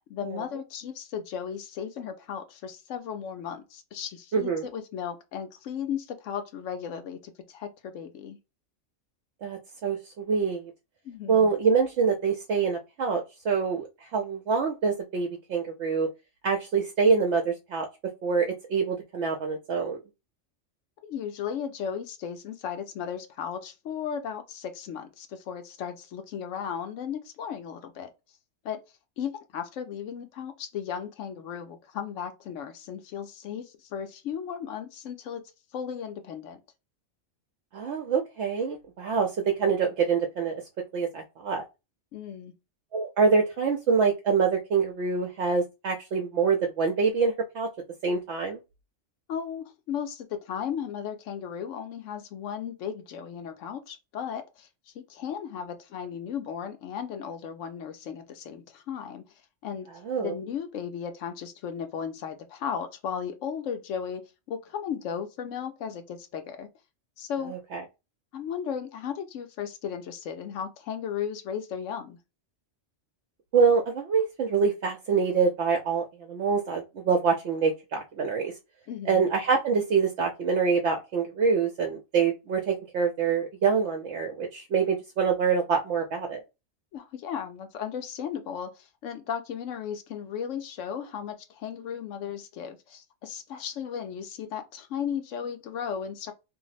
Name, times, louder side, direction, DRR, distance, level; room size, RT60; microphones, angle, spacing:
voice 1, 0.1-8.4 11.0-11.5 21.0-28.1 28.6-28.8 29.2-35.4 35.7-36.6 42.1-42.5 49.3-54.7 54.9-59.2 59.6-59.9 60.2-64.2 64.5-66.7 67.2-67.5 68.3-72.2 78.9-79.3 86.9-96.3, left 8 dB, 85° left, 1.0 m, -35 dB
voice 2, 4.3-4.6 9.4-10.7 11.3-16.1 16.4-17.9 18.2-20.0 37.7-39.3 39.6-40.5 40.9-41.6 42.9-47.7 48.0-48.6 60.0-60.3 67.5-67.8 73.5-78.5 79.1-86.4, right 5 dB, 70° right, 0.9 m, -25 dB
2.7 x 2.0 x 3.9 m
omnidirectional pair, 1.3 m